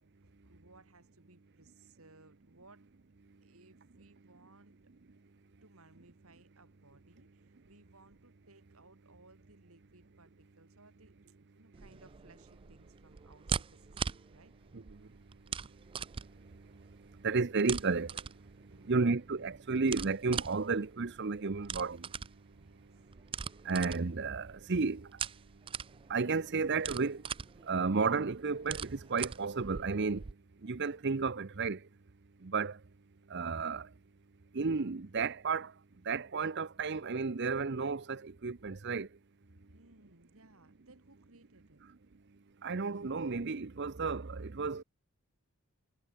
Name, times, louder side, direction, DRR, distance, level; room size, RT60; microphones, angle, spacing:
voice 1, 0.2-2.9 3.4-4.8 5.6-14.5 18.7-19.0 22.5-23.0 39.5-41.8, right 2 dB, 75° right, 6.0 m, -62 dB
sound 1, 11.7-30.3, right 7 dB, 25° right, 0.3 m, -42 dB
voice 2, 14.7-31.9 32.4-32.8 33.3-33.9 34.5-39.2 39.6-39.7 42.6-44.8, right 4 dB, 50° right, 0.7 m, -34 dB
head